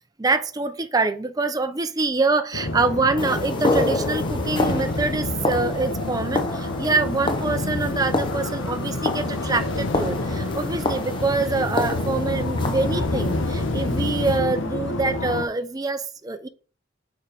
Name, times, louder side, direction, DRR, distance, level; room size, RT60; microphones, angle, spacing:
voice 1, 0.2-16.5, right 3 dB, 20° right, 0.5 m, -25 dB
sound 1, 2.5-15.5, left 2 dB, 80° left, 1.1 m, -28 dB
sound 2, 3.2-14.4, left 2 dB, 25° left, 1.0 m, -29 dB
6.1 x 4.7 x 5.1 m
head